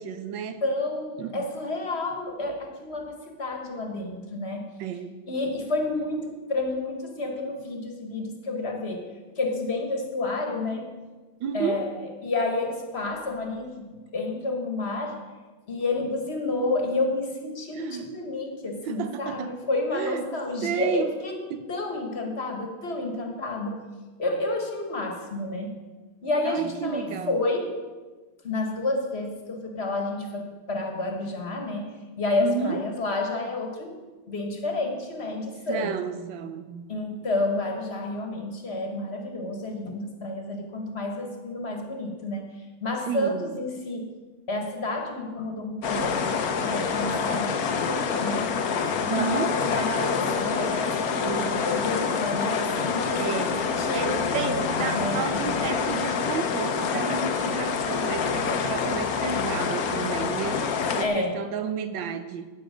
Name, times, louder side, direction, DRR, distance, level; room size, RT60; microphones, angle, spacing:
voice 1, 0.0-0.6 1.2-1.5 4.8-5.2 11.4-11.9 17.7-18.1 18.9-19.5 19.9-20.2 20.6-21.1 21.5-21.6 26.5-27.4 32.4-32.8 35.7-36.9 43.1-43.5 49.1-49.5 51.2-51.7 53.2-53.6 53.9-60.6 61.0-62.5, right 7 dB, 70° right, 10 dB, 1.5 m, -32 dB
voice 2, 0.6-4.7 5.3-10.9 11.5-15.2 15.7-21.4 21.7-23.8 24.2-25.8 26.2-27.7 28.4-34.0 34.3-35.9 36.9-42.5 42.8-44.1 44.5-48.5 49.0-55.2 61.0-61.4, left 2 dB, 35° left, 3 dB, 1.5 m, -30 dB
sound 1, 45.8-61.0, left 5 dB, 60° left, 1.1 m, -27 dB
13.0 x 8.9 x 5.1 m, 1.3 s
omnidirectional pair, 2.2 m